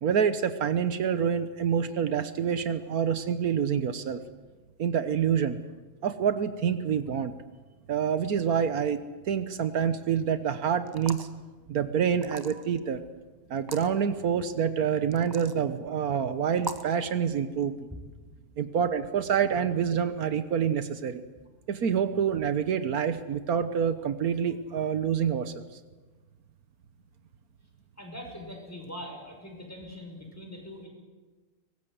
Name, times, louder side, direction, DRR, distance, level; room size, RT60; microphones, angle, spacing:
voice 1, 0.0-4.2 4.8-5.6 6.0-7.3 7.9-9.0 9.3-11.3 11.7-13.0 13.5-17.9 18.6-21.2 21.7-25.7, right 7 dB, 80° right, 11 dB, 1.5 m, -27 dB
sound 1, 10.9-11.4 12.2-12.8 13.6-13.9 15.1-15.6 16.6-16.9, right 2 dB, 15° right, 1.1 m, -39 dB
voice 2, 28.0-30.9, left 1 dB, 10° left, 1 dB, 5.8 m, -42 dB
23.5 x 20.0 x 8.1 m, 1.3 s
omnidirectional pair, 1.6 m